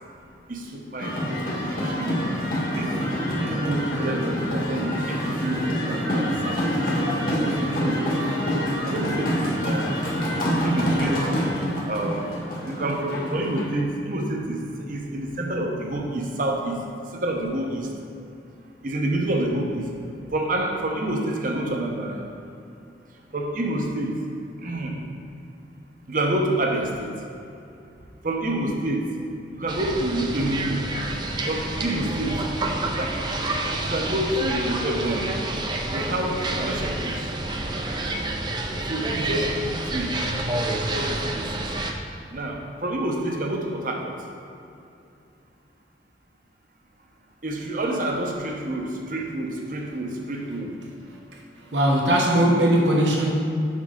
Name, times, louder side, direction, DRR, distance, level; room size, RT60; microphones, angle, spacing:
voice 1, 0.5-2.2 2.7-2.9 3.4-6.8 7.4-10.0 10.4-11.3 11.8-12.3 12.6-14.6 14.9-16.8 17.1-17.9 18.8-19.9 20.3-22.2 23.3-24.1 24.6-25.0 26.1-27.1 28.2-29.1 29.5-30.8 31.5-32.5 32.8-33.2 33.8-35.3 35.9-37.3 38.8-40.2 40.7-41.7 42.3-44.1 47.4-50.7, right 1 dB, 50° right, 1 dB, 0.8 m, -28 dB
sound 1, 1.0-13.6, equal, 50° left, 1.6 m, -26 dB
sound 2, 29.7-41.9, right 2 dB, 25° right, 0.5 m, -28 dB
voice 2, 51.7-53.3, right 1 dB, 80° right, -1 dB, 1.2 m, -19 dB
7.4 x 5.4 x 3.8 m, 2.7 s
head